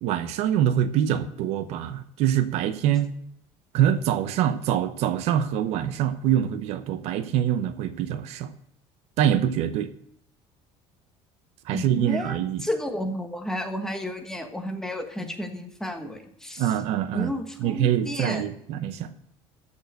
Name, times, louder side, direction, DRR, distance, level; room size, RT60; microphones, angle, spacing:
voice 1, 0.0-3.1 3.7-8.5 9.2-9.9 11.7-12.6 16.6-17.3 17.6-19.1, right 10 dB, 65° right, 11 dB, 0.9 m, -24 dB
voice 2, 11.7-16.7 17.1-18.4, left 1 dB, 5° left, 4 dB, 1.3 m, -32 dB
14.0 x 5.5 x 7.8 m, 0.68 s
cardioid pair, 155°, 11 cm